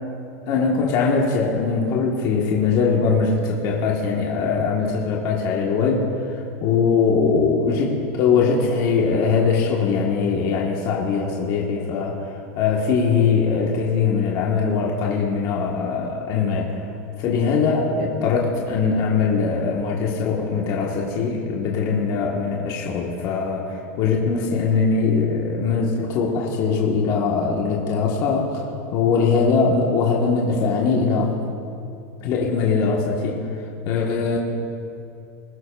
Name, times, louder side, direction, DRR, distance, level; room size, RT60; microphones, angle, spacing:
voice 1, 0.5-12.2 12.5-16.8 17.2-28.6 28.9-31.3 32.2-33.5 33.8-34.4, left 5 dB, 50° left, -2 dB, 1.6 m, -21 dB
21.0 x 11.0 x 2.5 m, 2.6 s
supercardioid pair, 125°, 8 cm